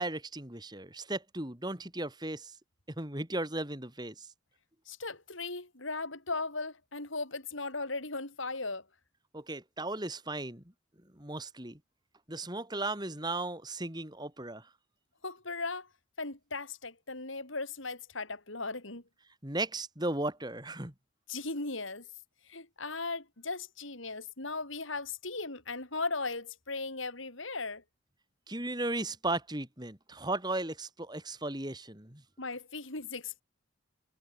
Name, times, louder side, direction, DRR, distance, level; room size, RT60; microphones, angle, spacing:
voice 1, 0.0-2.6 3.0-4.3 9.3-10.6 11.1-11.8 12.3-14.7 19.4-20.9 28.5-32.2, right 2 dB, 20° right, 3.5 m, -36 dB
voice 2, 4.9-8.8 15.2-15.9 16.2-19.0 21.3-22.1 22.5-27.8 32.4-33.4, left 3 dB, 75° left, 5.6 m, -37 dB
head